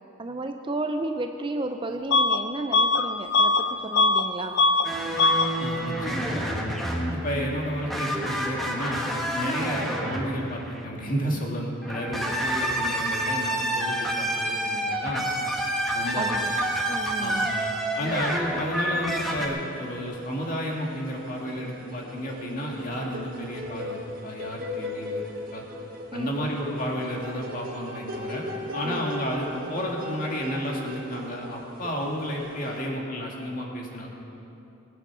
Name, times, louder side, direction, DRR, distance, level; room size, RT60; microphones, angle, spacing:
voice 1, 0.2-4.5 9.4-9.6 16.2-16.5 16.9-17.5 18.0-18.2 26.1-26.5 28.8-29.1, right 2 dB, 25° right, 5 dB, 0.5 m, -33 dB
Bus / Alarm, 2.1-2.4 2.7-4.3 4.5-4.9 5.2-5.5, left 3 dB, 60° left, 0.6 m, -21 dB
sound 1, 4.8-10.8 11.8-19.5, right 1 dB, ahead, 1.3 m, -28 dB
voice 2, 5.6-6.4 7.1-15.3 15.9-16.5 17.2-17.5 17.9-24.0 24.2-25.2 25.5-25.6 26.1-34.1, equal, 40° left, -1 dB, 2.1 m, -32 dB
sound 2, 17.6-18.4 18.7-32.9, left 1 dB, 40° right, 1.7 m, -39 dB
20.0 x 9.4 x 6.2 m, 2.8 s
head